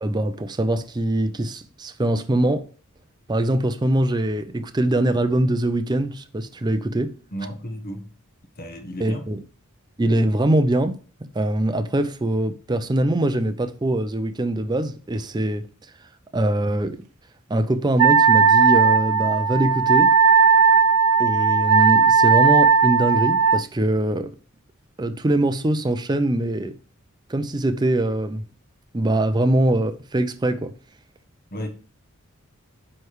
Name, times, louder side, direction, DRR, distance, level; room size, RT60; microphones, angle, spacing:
voice 1, 0.0-2.7 3.3-7.1 9.0-9.4 10.0-11.0 11.3-15.6 16.3-17.0 17.5-20.1 21.2-24.3 25.0-26.8 27.3-28.4 28.9-30.7, right 1 dB, 20° right, 0.4 m, -22 dB
voice 2, 7.3-8.1 8.6-9.2 31.5-31.7, equal, 45° left, 1.3 m, -33 dB
Wind instrument woodwind instrument, 18.0-23.6, right 5 dB, 85° right, 0.3 m, -16 dB
9.3 x 3.3 x 4.6 m
head